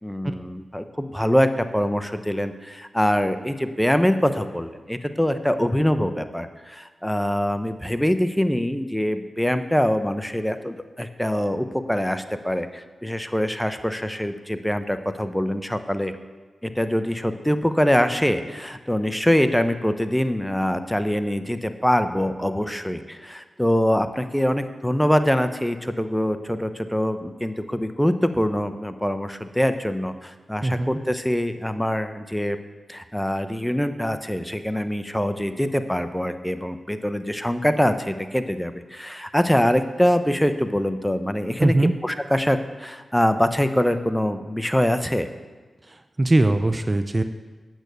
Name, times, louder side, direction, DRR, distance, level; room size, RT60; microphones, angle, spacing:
voice 1, 0.0-16.1 16.6-32.6 32.9-41.7 42.0-45.3, equal, 5° left, 10 dB, 0.8 m, -24 dB
voice 2, 41.6-41.9 45.8-47.2, right 2 dB, 35° right, 9 dB, 0.6 m, -21 dB
9.0 x 7.8 x 6.8 m, 1.3 s
cardioid pair, 40°, 0 cm